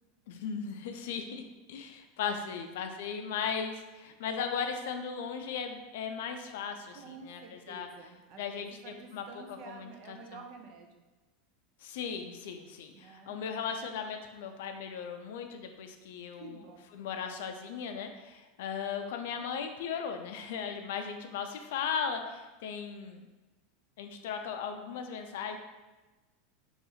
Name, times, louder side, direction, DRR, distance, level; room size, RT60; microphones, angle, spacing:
voice 1, 0.3-1.4 1.7-7.9 8.4-10.2 11.8-23.3 24.0-25.6, left 6 dB, 70° left, 6 dB, 0.4 m, -37 dB
voice 2, 2.2-2.6 4.1-4.2 6.9-11.0 12.9-13.4 16.4-17.0, right 5 dB, 40° right, 4 dB, 0.4 m, -50 dB
2.7 x 2.4 x 4.1 m, 1.2 s
supercardioid pair, 170°, 0 cm